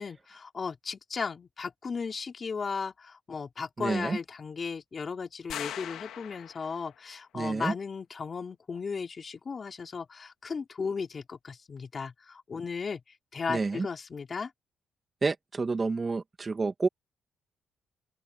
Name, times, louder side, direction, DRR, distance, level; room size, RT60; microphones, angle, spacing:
voice 1, 0.0-13.0 13.3-14.5, left 5 dB, 40° left, 4.0 m, -36 dB
voice 2, 3.8-4.2 7.3-7.7 13.5-13.9 15.2-16.9, right 4 dB, 30° right, 2.1 m, -29 dB
sound 1, 5.5-7.0, left 11 dB, 80° left, 2.4 m, -40 dB
open air
cardioid pair, 90°, 0 cm